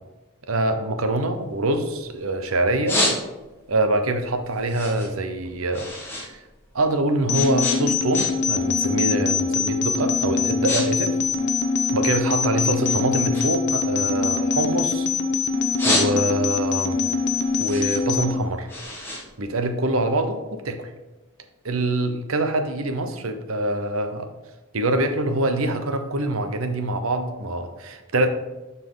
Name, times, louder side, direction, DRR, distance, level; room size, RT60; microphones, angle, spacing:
voice 1, 0.5-3.0 3.7-5.9 6.2-6.4 6.7-11.1 11.9-15.1 15.8-17.0 17.6-18.7 19.0-20.9 21.6-24.3 24.7-28.3, right 1 dB, 75° right, 7 dB, 0.9 m, -24 dB
sound 1, 1.1-2.2 2.6-3.7 4.1-6.3 6.6-8.6 8.9-9.2 9.8-10.0 10.3-10.9 11.1-12.4 12.8-15.1 15.5-16.6 17.0-20.1, left 1 dB, 10° left, 1.5 m, -29 dB
sound 2, 7.3-18.3, left 4 dB, 55° left, 0.8 m, -23 dB
12.0 x 4.3 x 3.9 m, 1.1 s
head